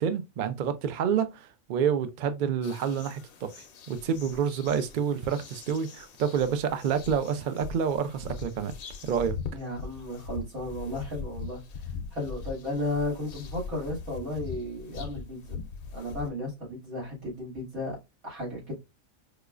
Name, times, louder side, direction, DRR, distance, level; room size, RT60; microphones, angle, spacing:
voice 1, 0.0-8.8 9.0-9.4, right 7 dB, 65° right, 0.4 m, -28 dB
sound 1, 2.6-16.3, left 5 dB, 60° left, 0.6 m, -41 dB
voice 2, 9.5-11.6 12.1-15.6 15.9-18.0 18.2-18.7, left 1 dB, 90° right, 2.9 m, -34 dB
4.8 x 2.3 x 2.4 m
omnidirectional pair, 1.4 m